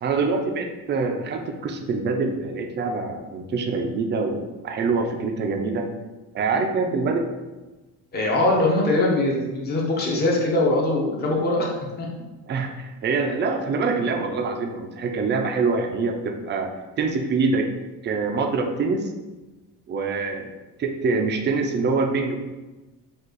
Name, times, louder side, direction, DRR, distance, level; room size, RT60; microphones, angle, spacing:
voice 1, 0.0-5.9 6.3-7.3 12.5-16.7 17.0-17.7 18.0-19.1 19.9-20.5 20.8-22.4, right 4 dB, 30° right, 4 dB, 0.4 m, -25 dB
voice 2, 8.1-11.7 12.0-12.1, left 2 dB, 25° left, -2 dB, 0.7 m, -22 dB
5.2 x 2.4 x 3.8 m, 1.2 s
cardioid pair, 170°, 36 cm